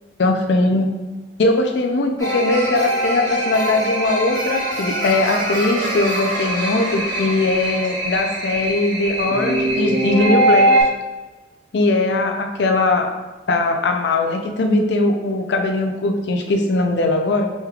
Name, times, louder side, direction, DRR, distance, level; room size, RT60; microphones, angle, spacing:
voice 1, 0.2-0.9 1.4-10.7 11.7-13.1 13.5-17.5, left 2 dB, 65° left, 4 dB, 0.4 m, -20 dB
sound 1, 2.2-10.8, right 1 dB, 20° left, 1.1 m, -22 dB
4.8 x 3.1 x 2.3 m, 1.2 s
head